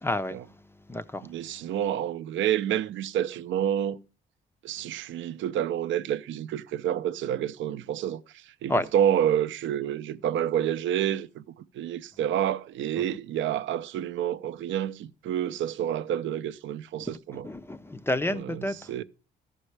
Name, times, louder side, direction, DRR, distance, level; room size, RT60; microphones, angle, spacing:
voice 1, 0.0-0.4 0.9-1.3 8.7-8.9 17.3-18.9, left 1 dB, 10° left, 0.4 m, -29 dB
voice 2, 1.2-4.0 4.6-11.4 11.7-17.5 18.3-19.0, right 10 dB, 75° right, 0.5 m, -29 dB
13.5 x 5.4 x 3.2 m
cardioid pair, 90°, 20 cm